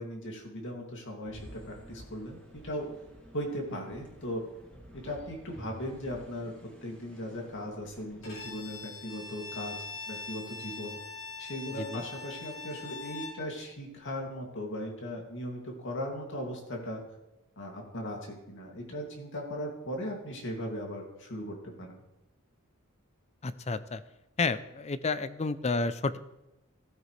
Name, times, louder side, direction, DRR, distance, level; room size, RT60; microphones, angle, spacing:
voice 1, 0.0-2.9 3.3-4.4 4.9-11.0 11.4-17.0 17.6-22.0, equal, 60° left, 1 dB, 2.5 m, -38 dB
sound 1, 1.2-6.3, equal, 85° right, 2.6 m, -53 dB
sound 2, 1.4-8.8, equal, 5° left, 2.4 m, -54 dB
Bowed string instrument, 8.2-13.4, left 4 dB, 80° left, 4.7 m, -42 dB
voice 2, 23.4-24.0 24.4-26.2, left 3 dB, 30° left, 14 dB, 0.5 m, -31 dB
16.0 x 9.2 x 3.3 m, 0.95 s
head